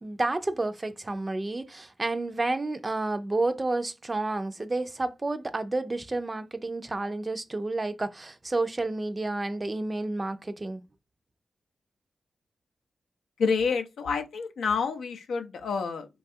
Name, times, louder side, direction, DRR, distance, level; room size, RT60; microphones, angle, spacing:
voice 1, 0.0-10.8, right 2 dB, 30° right, 0.4 m, -30 dB
voice 2, 13.4-16.1, left 5 dB, 85° left, 0.4 m, -28 dB
3.2 x 2.3 x 2.6 m
cardioid pair, 50°, 0 cm